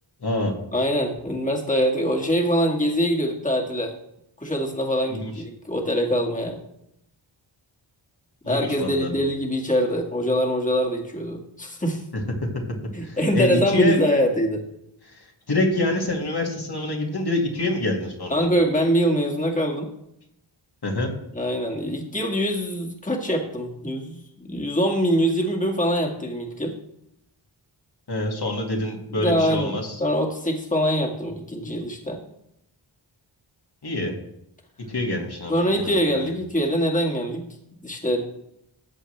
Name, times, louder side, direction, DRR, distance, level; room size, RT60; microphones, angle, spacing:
voice 1, 0.2-0.6 5.1-5.3 8.4-9.1 13.0-14.0 15.1-15.2 15.5-18.5 20.8-21.1 28.1-30.0 33.8-34.1 34.9-36.3, left 2 dB, 50° left, 0 dB, 2.2 m, -26 dB
voice 2, 0.7-3.9 4.4-6.6 8.5-12.0 12.9-14.6 18.3-19.9 21.3-26.7 29.1-32.2 35.5-37.5 37.8-38.2, equal, 15° left, 0 dB, 2.0 m, -23 dB
14.0 x 8.1 x 3.3 m, 0.78 s
cardioid pair, 60°, 48 cm